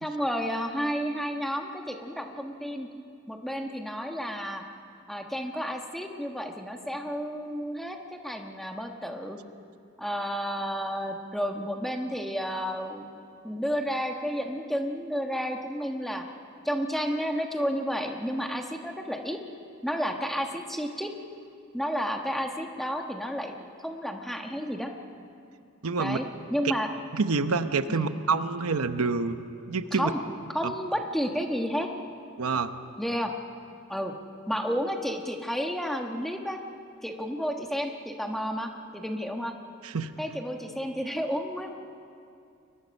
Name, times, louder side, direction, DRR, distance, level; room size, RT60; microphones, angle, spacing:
voice 1, 0.0-2.9 3.3-4.6 5.1-9.4 10.0-13.1 13.4-16.3 16.6-19.4 19.8-21.1 21.7-24.9 26.0-26.9 27.9-28.1 29.9-30.2 30.5-31.9 33.0-33.3 33.9-34.1 34.5-36.6 37.0-39.5 40.2-41.7, equal, ahead, 3 dB, 1.3 m, -31 dB
voice 2, 25.8-26.2 27.1-30.1 30.6-30.7 32.4-32.7 39.8-40.1, right 4 dB, 85° right, 10 dB, 0.9 m, -27 dB
30.0 x 23.0 x 5.4 m, 2.5 s
head